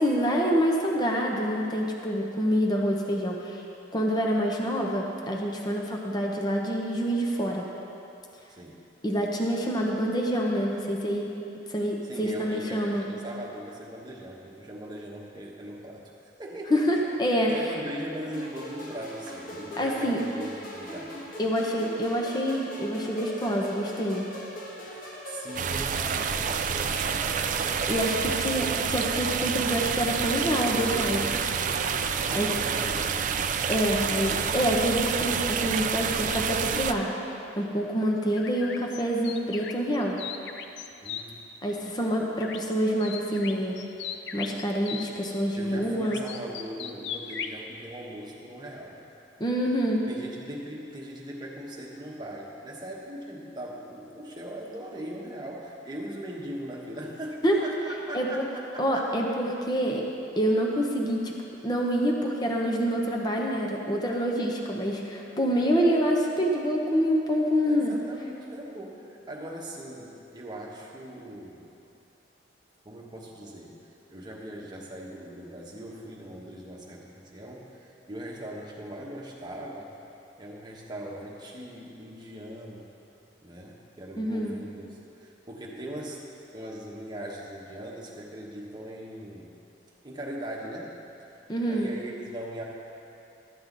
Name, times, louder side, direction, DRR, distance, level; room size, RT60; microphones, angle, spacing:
voice 1, 0.0-3.6 3.9-7.6 9.0-11.3 11.7-13.0 16.7-17.5 19.8-20.2 21.4-24.3 27.9-31.3 32.3-32.5 33.7-37.1 37.6-40.2 41.6-43.8 44.3-46.2 49.4-50.0 57.4-57.6 58.1-58.4 58.8-60.0 60.4-61.3 61.6-67.9 84.2-84.6 91.5-91.9, equal, 25° left, -1 dB, 0.8 m, -26 dB
voice 2, 8.5-8.9 12.0-16.1 16.4-17.1 17.5-21.2 24.9-28.2 32.3-33.6 41.0-41.3 45.5-49.0 50.1-59.1 67.6-71.7 72.8-79.9 80.4-82.9 83.4-84.9 85.2-86.3 86.5-89.6 90.0-92.6, right 1 dB, 25° right, -3 dB, 1.1 m, -40 dB
sound 1, 18.3-33.1, equal, 50° left, 1.3 m, -41 dB
sound 2, 25.6-36.9, right 7 dB, 45° right, 0.4 m, -28 dB
sound 3, 38.3-41.2 42.4-42.7 43.0-45.1 46.0-47.6, left 7 dB, 70° left, 0.5 m, -38 dB
12.5 x 7.9 x 3.9 m, 2.8 s
head